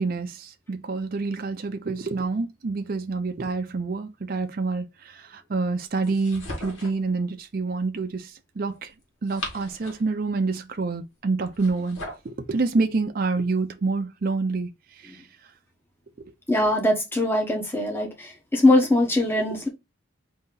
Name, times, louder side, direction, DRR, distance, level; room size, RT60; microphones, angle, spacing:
voice 1, 0.0-8.9 9.2-12.0 12.2-15.2 19.4-19.6, right 3 dB, 45° right, 0.5 m, -27 dB
sound 1, 6.0-7.1 9.0-10.2 11.4-12.3, left 1 dB, 75° left, 1.7 m, -38 dB
voice 2, 16.5-19.7, left 1 dB, 10° left, 1.0 m, -21 dB
4.0 x 2.8 x 3.8 m
head